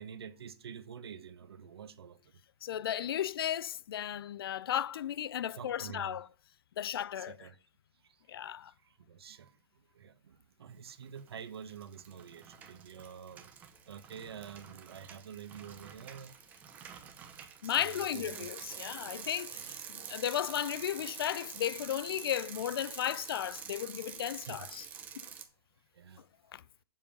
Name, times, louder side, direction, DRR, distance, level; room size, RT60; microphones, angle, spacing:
voice 1, 0.0-2.2 5.6-6.2 7.1-7.6 8.0-9.6 9.9-13.5 13.9-16.3 17.8-19.1 19.7-19.8 24.5-24.7 25.9-26.2, right 7 dB, 90° right, 1.1 m, -48 dB
voice 2, 2.6-6.3 6.8-7.5 8.3-8.7 17.6-24.8 26.5-26.6, left 10 dB, 70° left, 0.4 m, -35 dB
Bicycle, 11.0-11.4 11.7-25.4, right 8 dB, 10° right, 0.7 m, -47 dB
7.2 x 5.4 x 7.0 m
hypercardioid pair, 170°, 13 cm